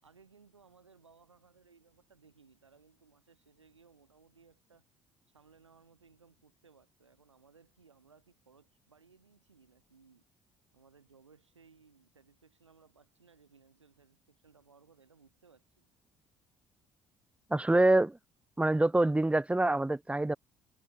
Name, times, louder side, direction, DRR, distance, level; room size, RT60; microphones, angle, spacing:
voice 1, 0.0-4.9 5.3-10.3 10.7-15.9, right 5 dB, 85° right, 4.6 m, -63 dB
voice 2, 17.5-18.2 18.6-20.4, right 2 dB, 10° right, 1.0 m, -25 dB
figure-of-eight pair, 50°, 15 cm